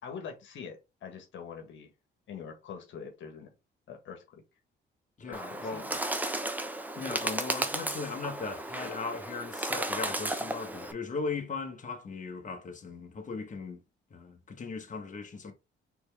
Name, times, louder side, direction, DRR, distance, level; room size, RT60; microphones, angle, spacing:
voice 1, 0.0-1.9 2.3-3.5 3.9-4.4 5.3-6.0, left 6 dB, 70° left, 1.4 m, -44 dB
voice 2, 5.2-5.8 6.9-13.8 14.1-15.5, left 4 dB, 40° left, 1.4 m, -38 dB
Bird, 5.3-10.9, right 1 dB, 10° right, 0.7 m, -34 dB
4.3 x 3.4 x 3.4 m
cardioid pair, 90°, 20 cm